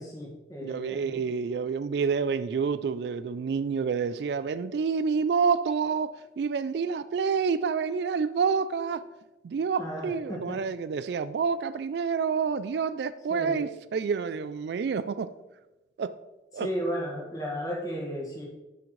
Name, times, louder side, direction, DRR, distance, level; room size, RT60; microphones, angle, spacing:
voice 1, 0.0-1.2 9.8-10.6 13.3-13.7 16.5-18.4, equal, 20° left, 1.8 m, -34 dB
voice 2, 0.6-9.0 9.4-15.3 16.0-16.2 16.5-16.7, right 5 dB, 65° right, 0.3 m, -28 dB
10.0 x 6.1 x 3.2 m
head